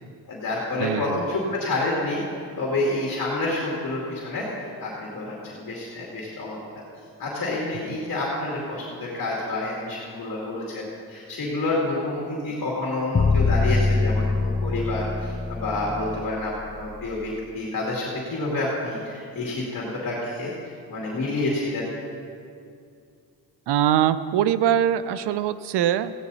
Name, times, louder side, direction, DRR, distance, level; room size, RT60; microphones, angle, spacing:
voice 1, 0.3-2.2 2.6-4.5 4.8-6.6 7.2-16.5 16.8-20.5 20.9-21.8, left 2 dB, 55° left, -5 dB, 2.6 m, -28 dB
voice 2, 0.8-1.2 23.7-26.1, right 10 dB, 80° right, 14 dB, 0.6 m, -22 dB
sound 1, 13.1-17.2, left 3 dB, 20° left, 0.3 m, -24 dB
15.0 x 9.5 x 4.2 m, 2.3 s
cardioid pair, 95°, 40 cm